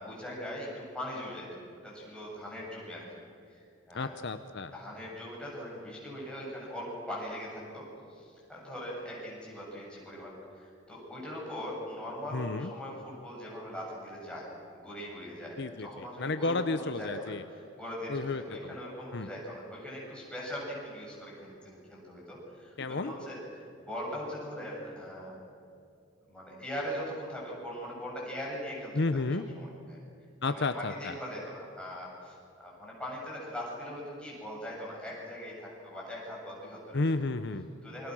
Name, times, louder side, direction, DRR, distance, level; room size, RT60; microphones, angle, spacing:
voice 1, 0.0-1.5 1.8-3.0 3.5-3.6 3.9-4.1 4.7-14.5 14.7-25.4 26.3-30.0 30.4-32.4 32.6-37.1 37.8-38.1, equal, 5° left, -5 dB, 8.0 m, -41 dB
voice 2, 3.9-4.7 12.3-12.7 15.6-17.4 18.1-18.4 19.1-19.3 22.8-23.1 28.9-29.4 30.4-31.1 36.9-37.7, left 3 dB, 60° left, 10 dB, 0.8 m, -31 dB
28.5 x 22.5 x 6.3 m, 2.5 s
head